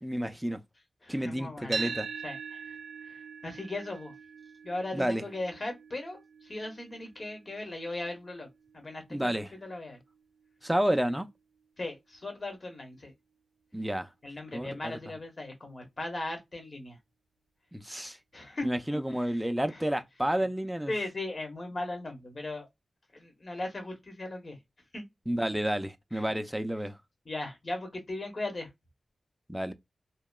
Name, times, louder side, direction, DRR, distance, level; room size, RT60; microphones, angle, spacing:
voice 1, 0.0-0.6 1.1-2.1 4.9-5.2 9.1-9.5 10.6-11.3 13.7-14.1 14.5-15.0 17.7-18.2 18.6-20.9 25.3-27.0 29.5-29.7, equal, 5° right, 0.3 m, -30 dB
voice 2, 1.0-2.0 2.2-2.6 3.1-4.1 4.6-8.5 8.7-10.0 11.8-13.1 14.2-17.0 18.3-18.7 19.3-19.4 19.7-19.8 20.9-22.7 23.1-24.6 24.9-25.0 26.1-26.2 27.2-28.7, left 2 dB, 45° left, 0.9 m, -38 dB
sound 1, 1.7-9.9, right 5 dB, 90° right, 0.4 m, -42 dB
2.8 x 2.2 x 2.2 m
wide cardioid pair, 75°, 0 cm